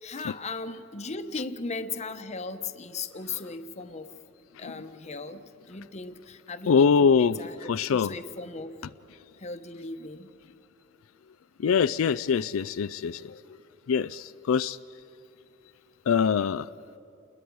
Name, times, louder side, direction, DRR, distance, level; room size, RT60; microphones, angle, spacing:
voice 1, 0.0-4.1 4.6-8.7 9.4-10.3, left 3 dB, 35° left, 9 dB, 0.9 m, -37 dB
voice 2, 6.7-8.1 11.6-13.4 13.9-14.8 16.1-16.7, left 6 dB, 90° left, 14 dB, 0.4 m, -24 dB
28.5 x 21.0 x 4.7 m, 2.9 s
head